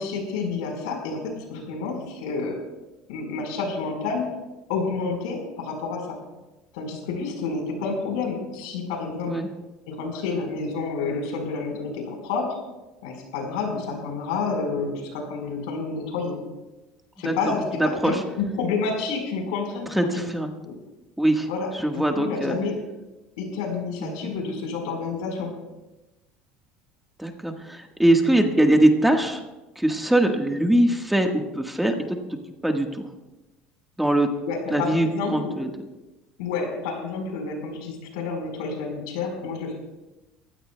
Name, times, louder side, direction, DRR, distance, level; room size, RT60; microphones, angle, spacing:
voice 1, 0.0-2.6 3.1-4.3 4.7-6.2 6.7-9.3 9.9-12.5 13.0-16.4 17.2-20.2 20.6-20.7 21.5-22.8 23.4-25.5 34.5-35.6 36.4-39.7, left 4 dB, 90° left, 2 dB, 4.4 m, -29 dB
voice 2, 17.8-18.2 19.9-20.5 21.2-21.5 21.7-22.6 24.0-24.1 27.2-29.4 29.8-32.2 32.6-33.0 34.0-34.3 34.7-35.7, right 1 dB, 5° right, 4 dB, 1.4 m, -22 dB
23.5 x 16.0 x 2.3 m, 1.1 s
supercardioid pair, 115°, 3 cm